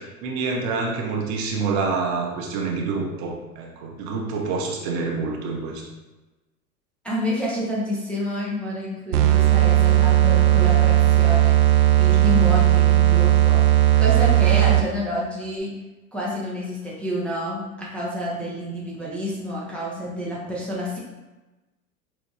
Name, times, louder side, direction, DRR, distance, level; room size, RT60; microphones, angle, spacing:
voice 1, 0.0-5.8, right 4 dB, 40° right, 0 dB, 0.7 m, -27 dB
voice 2, 7.0-13.6 14.0-15.7 16.1-21.0, left 1 dB, 5° left, -6 dB, 0.6 m, -28 dB
sound 1, 9.1-15.0, right 13 dB, 80° right, 0.5 m, -16 dB
5.9 x 2.2 x 2.4 m, 1.1 s
figure-of-eight pair, 90°, 46 cm